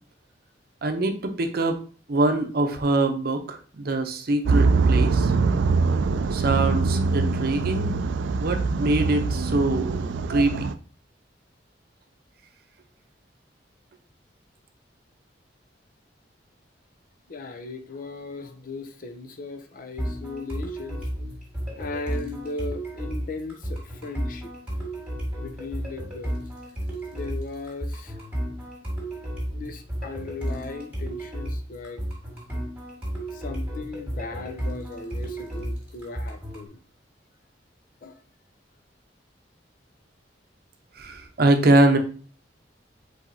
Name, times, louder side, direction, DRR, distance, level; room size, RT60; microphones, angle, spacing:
voice 1, 0.8-1.8 2.1-5.3 6.3-7.9 8.4-10.0 10.3-10.7 41.0-42.0, right 2 dB, 55° right, 6 dB, 0.7 m, -23 dB
sound 1, 4.5-10.7, right 4 dB, 90° right, 0.3 m, -23 dB
voice 2, 17.3-21.1 21.7-24.5 25.4-26.4 27.1-28.2 29.5-32.0 33.3-36.8 38.0-38.2, left 3 dB, 50° left, 8 dB, 0.6 m, -37 dB
sound 2, 20.0-36.7, equal, 10° right, 1.9 m, -33 dB
4.8 x 3.9 x 2.7 m, 0.40 s
head